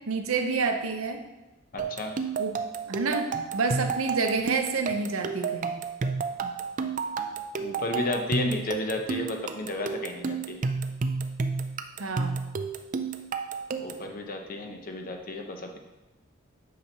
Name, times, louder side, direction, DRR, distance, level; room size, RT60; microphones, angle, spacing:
voice 1, 0.1-1.2 2.4-2.6 2.9-5.8 12.0-12.4, right 4 dB, 80° right, 5 dB, 0.8 m, -28 dB
voice 2, 1.7-2.1 7.6-10.6 13.8-15.8, left 2 dB, 45° left, 4 dB, 0.8 m, -32 dB
sound 1, 1.8-14.1, right 5 dB, 40° right, 0.4 m, -31 dB
8.5 x 5.9 x 2.9 m, 1.0 s
head